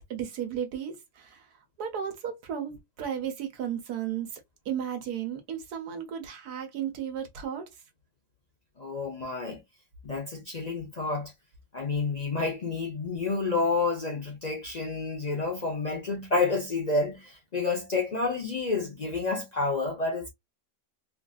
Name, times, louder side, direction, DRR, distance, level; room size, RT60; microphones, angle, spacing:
voice 1, 0.1-1.5 1.8-4.4 4.6-7.7, right 9 dB, 80° right, 1.3 m, -34 dB
voice 2, 8.8-9.6 10.0-11.3 11.7-20.3, left 3 dB, 45° left, 0.5 m, -29 dB
3.5 x 2.5 x 2.3 m
omnidirectional pair, 1.6 m